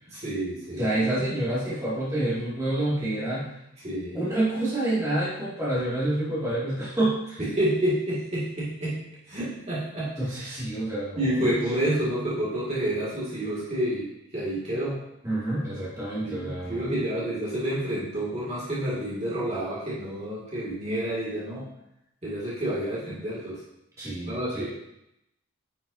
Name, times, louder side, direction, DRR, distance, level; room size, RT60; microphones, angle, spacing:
voice 1, 0.1-0.9 3.8-4.2 7.4-9.0 9.3-10.1 11.2-15.0 16.2-21.7 22.2-23.6 24.2-24.6, right 1 dB, 30° right, -8 dB, 2.1 m, -29 dB
voice 2, 0.8-3.5 4.1-7.4 10.2-11.6 15.2-17.0 24.0-24.6, right 1 dB, 15° right, -9 dB, 2.1 m, -28 dB
9.5 x 5.9 x 2.7 m, 0.82 s
head